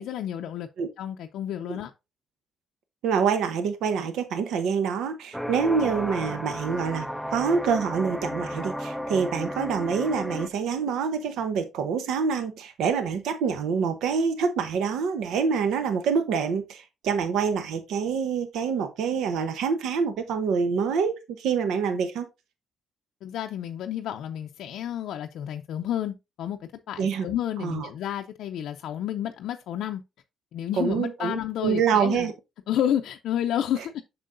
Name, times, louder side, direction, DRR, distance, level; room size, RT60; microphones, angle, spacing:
voice 1, 0.0-0.7 1.0-1.9 23.2-30.0 30.5-32.3 32.7-34.0, left 10 dB, 80° left, 0.4 m, -30 dB
voice 2, 3.0-22.3 27.0-27.3 27.6-27.9 30.8-32.3, right 6 dB, 85° right, 0.8 m, -26 dB
sound 1, 5.3-10.5, equal, ahead, 0.5 m, -33 dB
7.5 x 6.0 x 2.6 m
cardioid pair, 90°, 0 cm